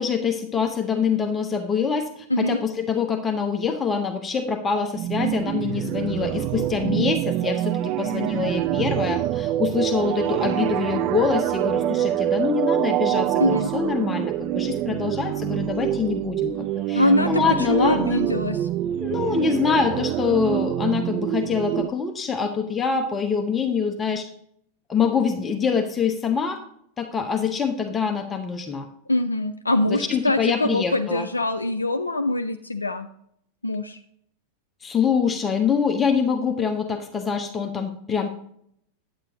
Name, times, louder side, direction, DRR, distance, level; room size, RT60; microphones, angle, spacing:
voice 1, 0.0-18.2 19.0-24.3 24.9-26.6 27.0-28.9 29.9-31.3 34.8-38.3, left 6 dB, 20° left, 5 dB, 0.8 m, -25 dB
sound 1, 4.9-21.9, right 13 dB, 40° right, 0.3 m, -25 dB
voice 2, 17.0-18.7 29.1-33.1 33.6-34.0, left 1 dB, 80° left, 7 dB, 0.4 m, -23 dB
9.0 x 8.7 x 2.9 m, 0.69 s
figure-of-eight pair, 90°, 0 cm